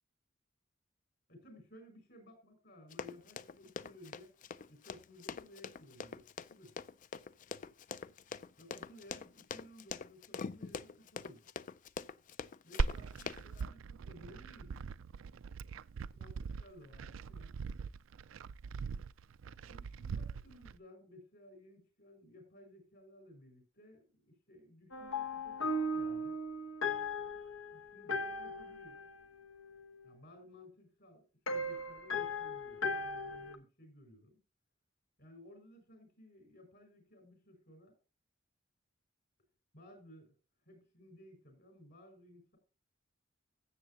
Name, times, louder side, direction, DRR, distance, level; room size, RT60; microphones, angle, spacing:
voice 1, 1.3-4.4 4.7-6.7 8.6-11.5 12.6-14.8 16.2-17.6 19.6-26.4 27.7-29.1 30.0-34.4 35.2-37.9 39.7-40.3 40.6-42.6, left 1 dB, 55° left, 5 dB, 5.5 m, -57 dB
Run, 2.9-13.6, left 6 dB, 40° left, 0.4 m, -44 dB
Glass, 12.8-20.8, right 5 dB, 80° right, 0.4 m, -40 dB
sound 1, 24.9-30.1 31.5-33.6, left 2 dB, 85° left, 1.0 m, -38 dB
13.0 x 7.8 x 2.8 m, 0.34 s
head